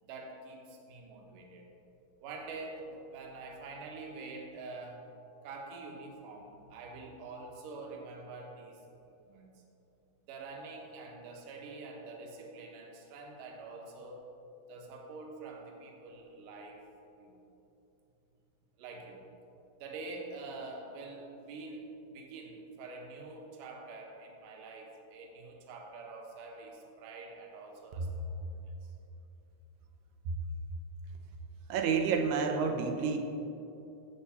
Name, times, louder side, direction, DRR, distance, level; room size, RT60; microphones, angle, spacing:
voice 1, 0.0-1.7 2.2-5.0 5.4-8.8 9.2-9.5 10.3-14.3 14.7-16.8 17.1-17.4 18.8-19.3 19.8-28.9, right 3 dB, 65° right, 1 dB, 2.5 m, -46 dB
voice 2, 31.7-33.2, right 5 dB, 80° right, 4 dB, 2.8 m, -29 dB
13.5 x 8.1 x 4.3 m, 2.9 s
omnidirectional pair, 4.7 m